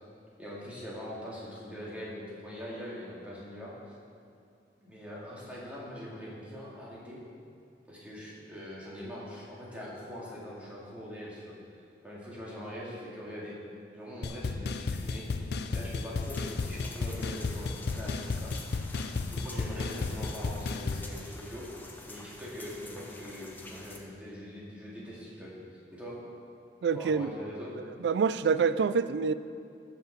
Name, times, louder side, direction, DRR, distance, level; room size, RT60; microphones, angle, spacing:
voice 1, 0.4-3.7 4.8-7.2 7.9-11.5 12.0-13.5 13.9-18.5 18.8-19.0 19.3-21.7 22.1-25.5 25.9-26.2 26.9-27.7, equal, 10° right, -7 dB, 2.2 m, -42 dB
sound 1, 14.2-21.1, left 3 dB, 70° left, 0.4 m, -33 dB
sound 2, 16.2-24.0, left 2 dB, 10° left, 0.7 m, -48 dB
voice 2, 26.8-27.3 28.0-29.3, right 5 dB, 80° right, 14 dB, 0.3 m, -26 dB
13.5 x 5.9 x 4.3 m, 2.5 s
head